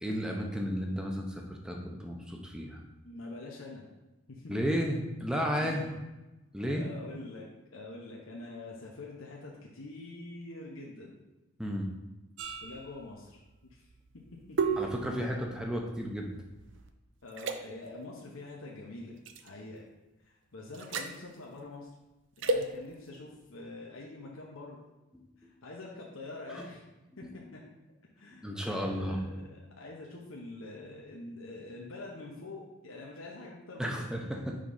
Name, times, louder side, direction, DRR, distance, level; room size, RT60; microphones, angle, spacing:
voice 1, 0.0-2.8 4.5-5.9 6.5-6.9 11.6-11.9 14.8-16.3 25.1-25.3 26.5-26.7 27.2-27.3 28.3-29.2 33.8-34.6, equal, 5° right, 1 dB, 0.6 m, -33 dB
voice 2, 3.0-3.8 4.3-4.5 5.6-5.9 6.7-11.1 12.4-13.9 14.1-14.8 15.1-15.2 17.2-19.9 20.2-21.9 22.4-24.8 25.4-26.8 27.2-27.6 28.2-34.1, left 2 dB, 75° left, -2 dB, 0.8 m, -45 dB
sound 1, 12.4-16.9 17.3-17.6 19.2-19.5 20.7-21.1 22.4-22.6, right 4 dB, 60° right, 0.5 m, -34 dB
5.1 x 3.8 x 5.4 m, 1.0 s
head